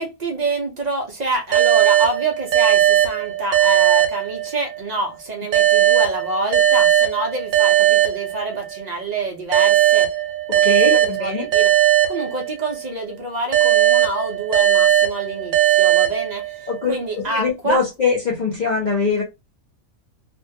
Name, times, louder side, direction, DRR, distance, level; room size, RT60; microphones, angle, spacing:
voice 1, 0.0-10.1 10.5-17.8, right 2 dB, 50° right, 0.5 m, -27 dB
sound 1, 1.5-4.9 5.5-8.8 9.5-12.9 13.5-16.8, right 11 dB, 70° right, 1.1 m, -18 dB
voice 2, 10.6-11.5 16.7-19.2, left 4 dB, 50° left, 0.5 m, -22 dB
2.5 x 2.2 x 2.6 m
omnidirectional pair, 1.5 m